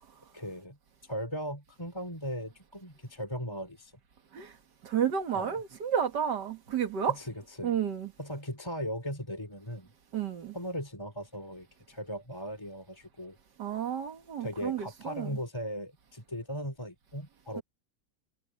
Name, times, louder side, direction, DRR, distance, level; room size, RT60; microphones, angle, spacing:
voice 1, 0.3-0.8 1.0-3.9 5.3-5.6 7.0-7.8 8.2-9.9 10.5-13.4 14.4-17.6, equal, 15° left, 3.6 m, -38 dB
voice 2, 4.8-7.1 7.6-8.1 10.1-10.5 13.6-15.4, right 8 dB, 90° right, 2.3 m, -31 dB
omnidirectional pair, 1.8 m